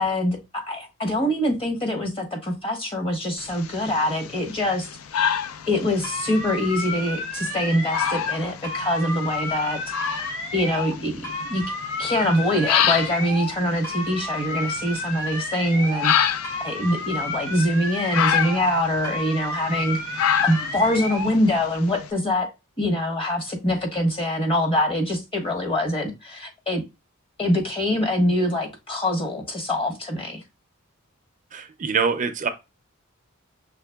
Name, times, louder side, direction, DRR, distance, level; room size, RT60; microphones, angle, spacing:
voice 1, 0.0-4.9 5.2-5.3 5.7-9.8 10.5-11.6 12.0-16.3 16.6-22.5 22.8-26.8 27.4-30.4, left 1 dB, 25° left, 1.2 m, -24 dB
sound 1, 3.4-22.1, left 9 dB, 90° left, 0.4 m, -29 dB
sound 2, 6.0-8.4 8.6-11.0 11.2-13.6 13.8-16.2 16.4-18.8 19.0-21.4, left 2 dB, 65° left, 1.9 m, -31 dB
voice 2, 31.5-32.5, right 5 dB, 35° right, 0.5 m, -24 dB
5.7 x 3.3 x 2.2 m
head